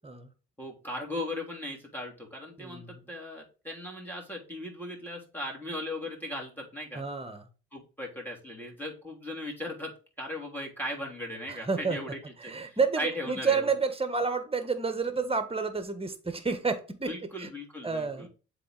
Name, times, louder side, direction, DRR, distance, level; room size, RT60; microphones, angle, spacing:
voice 1, 0.6-7.0 7.7-13.7 17.1-18.3, left 1 dB, 5° left, 3.1 m, -38 dB
voice 2, 2.6-3.0 6.9-7.5 11.5-12.0 12.4-17.1 17.4-17.5 17.8-18.3, right 4 dB, 15° right, 1.4 m, -30 dB
7.6 x 4.2 x 3.8 m
hypercardioid pair, 55°, 34 cm